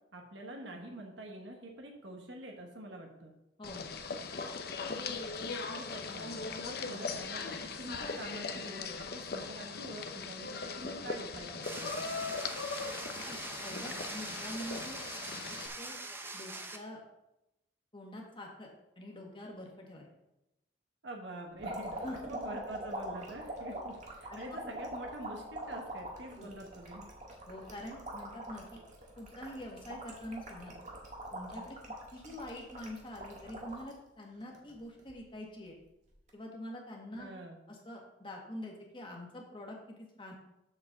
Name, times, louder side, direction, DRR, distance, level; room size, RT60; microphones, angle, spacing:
voice 1, 0.1-3.3 5.8-12.1 21.0-27.1 37.2-37.6, right 1 dB, 80° right, 2 dB, 1.2 m, -46 dB
sound 1, 3.6-15.7, left 4 dB, 55° left, 0.7 m, -39 dB
voice 2, 3.6-3.9 13.3-15.0 15.8-16.0 16.3-17.0 17.9-18.7 19.0-20.1 22.0-22.4 23.6-23.9 24.3-24.6 26.4-26.5 27.5-28.8 29.2-30.7 31.3-31.8 32.1-35.8 36.3-37.3 37.7-40.3, left 1 dB, 30° left, 0 dB, 1.6 m, -45 dB
sound 2, 11.6-16.8, right 2 dB, 10° right, 0.7 m, -43 dB
sound 3, 21.6-33.9 34.4-35.1 36.1-36.3, right 1 dB, 40° right, 1.6 m, -43 dB
7.7 x 4.5 x 6.7 m, 0.90 s
head